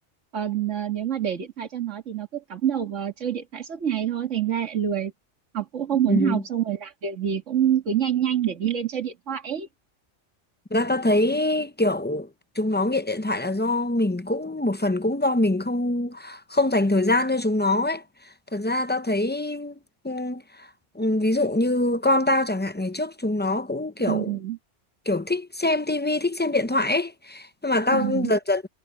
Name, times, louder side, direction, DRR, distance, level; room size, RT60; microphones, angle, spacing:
voice 1, 0.3-5.1 5.5-9.7 24.0-24.6 27.9-28.3, right 10 dB, 80° right, 2.2 m, -26 dB
voice 2, 6.1-6.4 10.7-12.3 12.6-18.0 18.5-19.8 20.0-20.7 20.9-24.3 25.1-28.7, left 2 dB, 10° left, 0.5 m, -24 dB
omnidirectional pair, 1.2 m